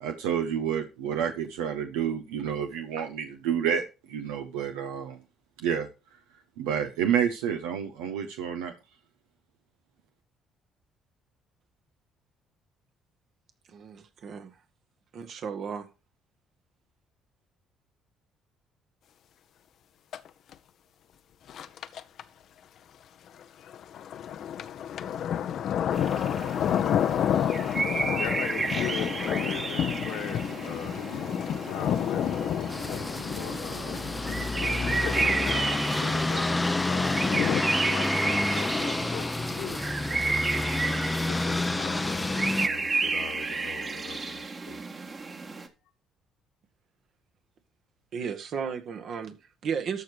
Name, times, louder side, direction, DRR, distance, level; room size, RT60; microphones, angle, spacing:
voice 1, 0.0-5.2 5.6-5.9 6.6-8.7, right 8 dB, 85° right, 6 dB, 0.9 m, -29 dB
voice 2, 13.7-14.6 15.1-15.9 48.1-50.0, right 6 dB, 60° right, 7 dB, 1.6 m, -34 dB
sound 1, 20.1-20.3 20.5-20.6 21.5-22.2 23.4-37.6, left 9 dB, 65° left, 0.7 m, -30 dB
sound 2, 25.9-45.7, right 3 dB, 35° right, 1.7 m, -32 dB
voice 3, 27.8-31.2 31.6-33.1 33.4-34.3 35.0-40.9 41.2-44.8, left 9 dB, 80° left, 4 dB, 1.9 m, -40 dB
sound 3, 32.7-42.7, left 2 dB, 15° left, 0.6 m, -29 dB
13.0 x 5.0 x 4.9 m, 0.30 s
supercardioid pair, 60°, 0 cm